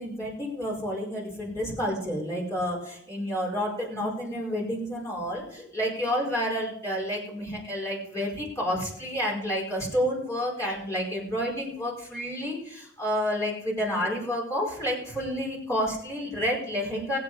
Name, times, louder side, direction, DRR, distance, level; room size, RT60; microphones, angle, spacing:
voice 1, 0.0-17.2, equal, 15° left, -4 dB, 4.8 m, -30 dB
20.5 x 8.6 x 5.0 m, 0.69 s
head